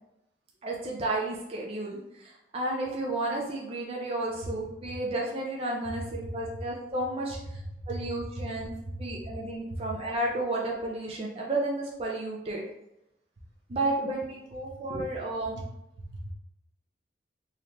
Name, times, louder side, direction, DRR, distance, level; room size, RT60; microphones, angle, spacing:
voice 1, 0.6-12.6 13.7-15.6, right 2 dB, 30° right, -3 dB, 0.5 m, -32 dB
voice 2, 7.5-8.0 8.4-8.5 8.8-9.1 9.7-9.8 16.0-16.3, right 1 dB, 75° right, -1 dB, 0.9 m, -38 dB
4.0 x 2.6 x 3.2 m, 0.86 s
head